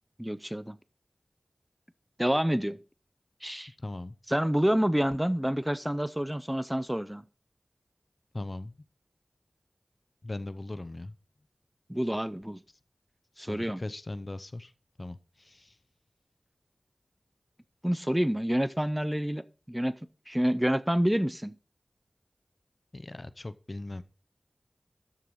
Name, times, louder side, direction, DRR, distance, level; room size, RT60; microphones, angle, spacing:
voice 1, 0.2-0.8 2.2-2.8 3.4-3.7 4.3-7.2 11.9-12.6 13.4-13.8 17.8-20.0 20.3-21.6, equal, 10° right, 0.5 m, -28 dB
voice 2, 3.8-4.2 8.3-8.8 10.2-11.1 13.4-14.7 15.0-15.8 22.9-24.0, left 2 dB, 45° left, 0.7 m, -39 dB
13.0 x 4.7 x 5.4 m
wide cardioid pair, 50°, 0 cm